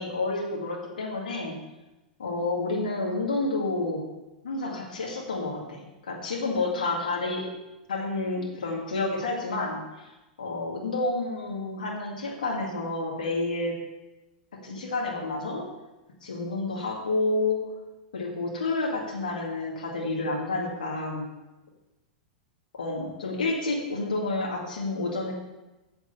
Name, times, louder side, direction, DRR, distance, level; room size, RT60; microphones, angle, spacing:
voice 1, 0.0-1.6 2.2-4.1 4.4-7.5 7.9-10.1 10.4-13.8 14.6-15.6 16.2-17.6 18.1-21.3 22.8-25.3, left 2 dB, 80° left, -2 dB, 2.2 m, -29 dB
8.2 x 6.9 x 5.6 m, 1.1 s
hypercardioid pair, 110°, 5 cm